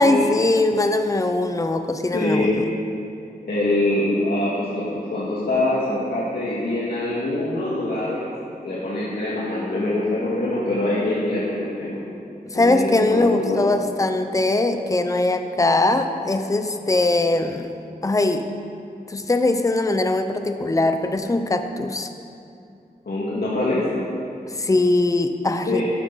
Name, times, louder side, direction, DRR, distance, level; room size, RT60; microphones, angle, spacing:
voice 1, 0.0-2.6 12.5-17.8 18.0-18.5 19.1-22.1 24.6-25.8, left 2 dB, 20° left, 7 dB, 0.7 m, -21 dB
voice 2, 2.1-2.6 3.4-8.3 8.6-12.0 12.5-13.7 23.1-23.9 25.7-25.8, left 1 dB, 80° left, -8 dB, 2.1 m, -24 dB
13.5 x 11.5 x 4.1 m, 2.5 s
wide cardioid pair, 90°, 16 cm